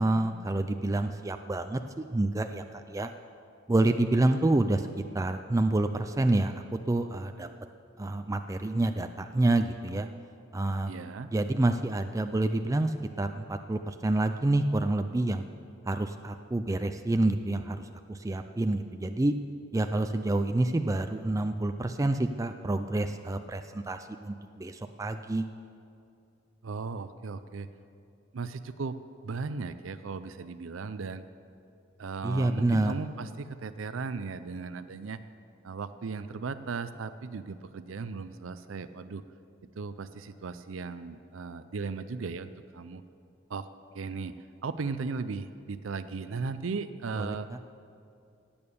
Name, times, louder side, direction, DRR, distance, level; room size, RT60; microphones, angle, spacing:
voice 1, 0.0-1.8 2.1-3.1 3.7-4.9 5.1-7.5 8.0-10.1 10.5-10.9 11.3-15.4 15.9-17.8 18.1-19.3 19.7-25.4 32.2-32.9 47.2-47.4, right 2 dB, 15° right, 7 dB, 0.4 m, -28 dB
voice 2, 10.9-11.3 26.6-27.7 28.3-29.0 29.2-31.2 32.0-35.2 35.6-39.2 39.8-43.0 43.5-43.7 43.9-44.3 44.6-47.5, right 4 dB, 75° right, 12 dB, 0.5 m, -36 dB
17.5 x 8.7 x 7.0 m, 2.5 s
head